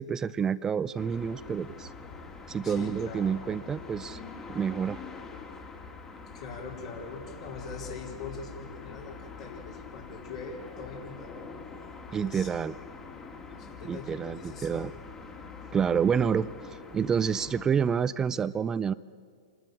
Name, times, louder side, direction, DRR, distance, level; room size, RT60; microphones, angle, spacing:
voice 1, 0.0-1.9 2.5-4.2 4.5-5.0 12.1-12.7 13.8-14.9 15.7-18.9, right 7 dB, 15° right, 16 dB, 0.4 m, -28 dB
sound 1, 1.0-17.6, left 4 dB, 20° left, 2.0 m, -44 dB
voice 2, 2.6-3.5 6.3-11.4 12.1-12.6 13.6-14.8, left 4 dB, 60° left, -3 dB, 4.3 m, -42 dB
28.0 x 12.5 x 7.6 m, 2.1 s
figure-of-eight pair, 110°, 3 cm